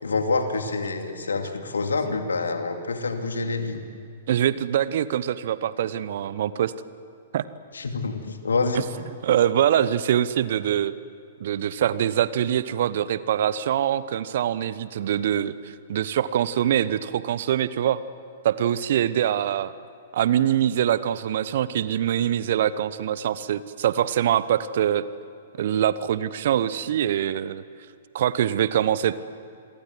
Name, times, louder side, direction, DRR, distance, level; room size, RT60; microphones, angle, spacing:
voice 1, 0.0-3.8 7.7-8.9, left 3 dB, 75° left, 6 dB, 2.5 m, -27 dB
voice 2, 4.3-6.7 7.3-7.4 9.2-10.9 11.4-18.0 18.4-19.7 20.1-25.0 25.6-27.6 28.1-29.2, right 10 dB, 55° right, 16 dB, 1.0 m, -24 dB
28.0 x 23.0 x 7.9 m, 2.4 s
figure-of-eight pair, 110°, 0 cm